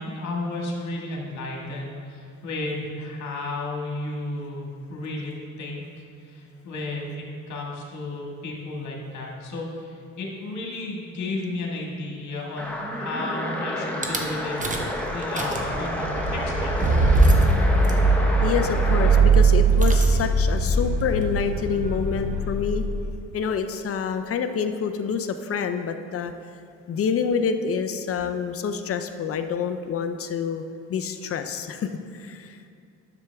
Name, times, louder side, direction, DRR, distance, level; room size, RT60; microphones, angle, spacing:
voice 1, 0.0-5.8 6.2-16.7, left 2 dB, 70° left, -1 dB, 2.0 m, -33 dB
sound 1, 12.6-19.3, left 1 dB, 5° left, 1.1 m, -30 dB
Rattle / Car / Engine starting, 14.0-14.2 14.6-15.0 15.2-23.0, right 3 dB, 25° right, 1.0 m, -21 dB
voice 2, 18.4-22.8 23.3-26.3 26.9-30.6 30.9-32.6, left 6 dB, 50° left, 8 dB, 0.6 m, -27 dB
9.8 x 7.1 x 3.5 m, 2.4 s
cardioid pair, 90°, 30 cm